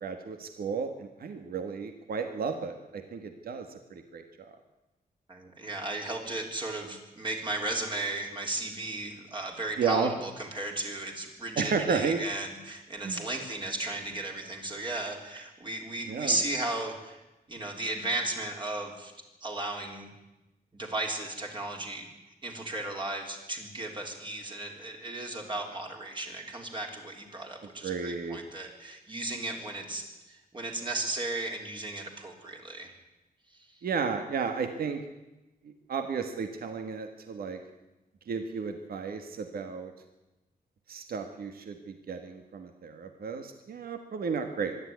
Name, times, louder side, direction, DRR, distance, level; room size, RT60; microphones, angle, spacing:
voice 1, 0.0-4.5 9.8-10.1 11.6-12.2 13.0-13.2 16.1-16.4 27.8-28.4 33.8-35.0 35.6-37.6 38.3-39.9 40.9-44.8, right 5 dB, 70° right, 7 dB, 1.7 m, -33 dB
voice 2, 5.3-17.2 17.5-19.1 19.4-20.1 20.7-22.1 22.4-32.9, right 2 dB, 30° right, 1 dB, 3.7 m, -35 dB
25.0 x 11.5 x 9.6 m, 1.0 s
wide cardioid pair, 140°, 16 cm